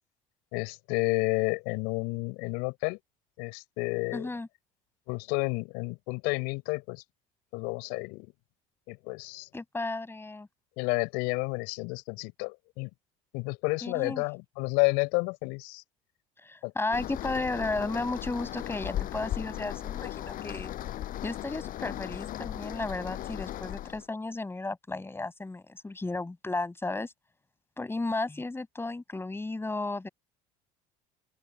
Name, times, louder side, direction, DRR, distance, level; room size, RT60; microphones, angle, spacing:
voice 1, 0.5-3.0 3.4-4.3 5.1-7.0 7.5-8.3 8.9-9.5 10.8-12.9 13.3-15.8 16.6-16.7, left 29 dB, 75° left, 6.3 m, -30 dB
voice 2, 4.1-4.5 9.5-10.5 13.8-14.2 16.4-20.7 21.2-27.1 27.8-30.1, left 2 dB, 15° left, 6.2 m, -34 dB
sound 1, 16.9-24.1, left 13 dB, 55° left, 7.8 m, -37 dB
open air
supercardioid pair, 90°, 17 cm